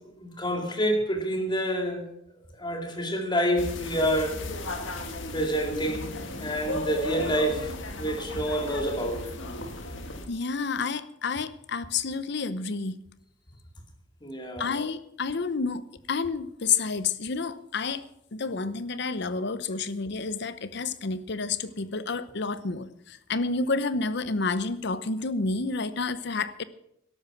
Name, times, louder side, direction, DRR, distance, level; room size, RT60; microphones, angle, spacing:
voice 1, 0.2-2.1 2.6-4.4 5.3-9.3 14.2-14.7, equal, 25° left, 4 dB, 2.3 m, -28 dB
sound 1, 3.6-10.3, left 1 dB, 85° left, 1.9 m, -35 dB
voice 2, 10.3-13.0 14.6-18.0 18.3-26.6, left 4 dB, 65° left, 14 dB, 0.8 m, -30 dB
13.0 x 11.5 x 6.0 m, 0.76 s
head